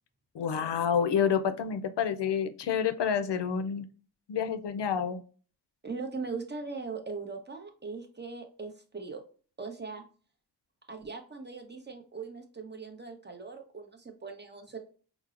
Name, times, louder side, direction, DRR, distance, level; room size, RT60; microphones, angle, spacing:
voice 1, 0.3-3.9 4.3-5.2, left 7 dB, 80° left, 10 dB, 0.5 m, -28 dB
voice 2, 5.8-9.2 9.6-10.0 10.9-14.8, right 4 dB, 25° right, 3 dB, 0.8 m, -40 dB
4.5 x 2.0 x 2.4 m, 0.40 s
wide cardioid pair, 75°, 41 cm